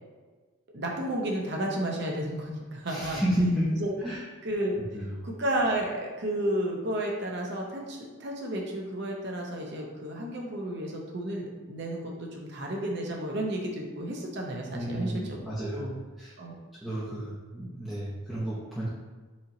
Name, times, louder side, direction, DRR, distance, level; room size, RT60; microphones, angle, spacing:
voice 1, 0.7-3.2 3.8-4.0 4.4-4.8 5.2-15.9 16.4-16.5, right 1 dB, 50° right, -1 dB, 0.7 m, -32 dB
voice 2, 2.9-3.7 4.0-4.2 4.9-5.1 14.7-15.8 16.2-16.3 16.8-18.9, equal, ahead, -11 dB, 0.7 m, -31 dB
4.2 x 2.9 x 3.8 m, 1.3 s
head